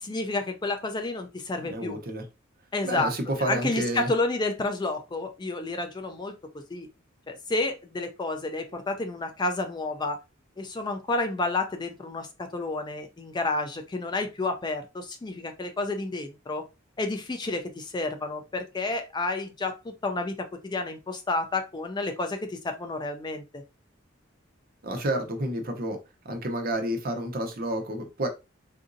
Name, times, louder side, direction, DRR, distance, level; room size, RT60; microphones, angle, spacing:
voice 1, 0.0-2.0 2.7-3.1 3.5-6.9 7.3-10.2 10.6-16.6 17.0-23.6, left 2 dB, 20° left, 6 dB, 0.4 m, -30 dB
voice 2, 1.7-2.2 2.8-4.1 24.8-26.0 26.2-28.3, right 1 dB, 45° right, 4 dB, 0.8 m, -30 dB
3.9 x 2.5 x 2.5 m, 0.27 s
head